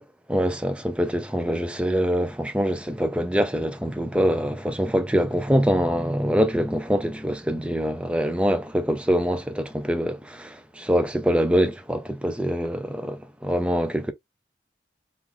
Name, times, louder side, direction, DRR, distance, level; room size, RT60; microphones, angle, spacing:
voice 1, 0.3-14.1, equal, 5° right, 0.4 m, -24 dB
3.7 x 2.4 x 3.2 m
head